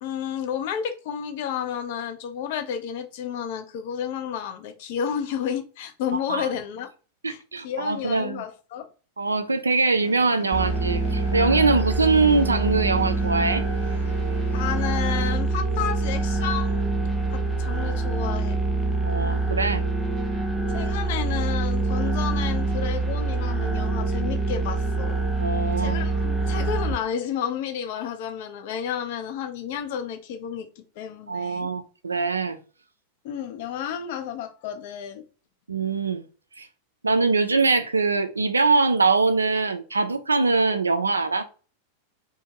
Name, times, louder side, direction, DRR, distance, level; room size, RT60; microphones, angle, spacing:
voice 1, 0.0-6.9 7.3-8.9 14.5-16.9 17.3-18.6 20.7-25.2 25.8-31.7 33.2-35.2, left 8 dB, 50° left, 0.4 m, -31 dB
voice 2, 7.2-8.4 9.2-13.6 19.0-19.9 25.4-26.1 31.3-32.6 35.7-36.3 36.6-36.7 37.0-41.4, right 3 dB, 75° right, 0.3 m, -23 dB
sound 1, 10.0-15.1, left 2 dB, 85° left, 0.8 m, -43 dB
sound 2, 10.5-26.9, right 3 dB, ahead, 0.5 m, -25 dB
2.5 x 2.2 x 2.7 m
figure-of-eight pair, 90°, 0 cm